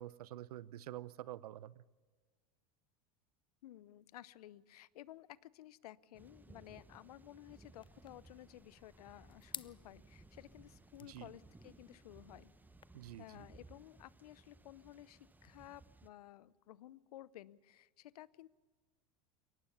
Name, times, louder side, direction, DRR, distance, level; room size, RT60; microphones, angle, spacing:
voice 1, 0.0-1.7 11.1-11.3 12.9-13.2, right 13 dB, 80° right, 20 dB, 0.6 m, -47 dB
voice 2, 3.6-12.5 13.2-18.5, left 14 dB, 80° left, 21 dB, 0.7 m, -55 dB
sound 1, 6.1-16.1, right 3 dB, 10° right, 0.8 m, -61 dB
sound 2, 7.8-12.8, left 8 dB, 25° left, 0.6 m, -55 dB
22.5 x 18.5 x 6.9 m, 1.4 s
hypercardioid pair, 90°, 19 cm